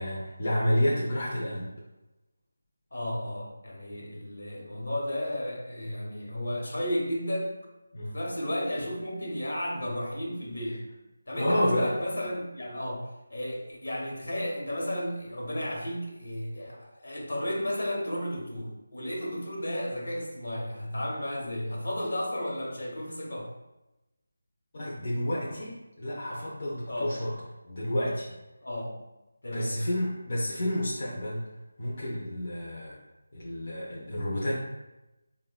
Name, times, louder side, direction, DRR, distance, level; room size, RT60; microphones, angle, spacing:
voice 1, 0.0-1.7 7.9-8.2 10.7-10.8 11.3-11.9 24.7-28.4 29.5-31.5 31.8-33.0 33.3-34.6, equal, 45° left, -5 dB, 0.5 m, -30 dB
voice 2, 2.9-7.5 8.0-10.8 11.3-13.0 13.3-23.5 26.9-27.2 28.6-28.9 29.4-29.8, left 1 dB, 70° left, -2 dB, 0.8 m, -33 dB
3.4 x 2.1 x 2.2 m, 1.0 s
figure-of-eight pair, 165°, 0 cm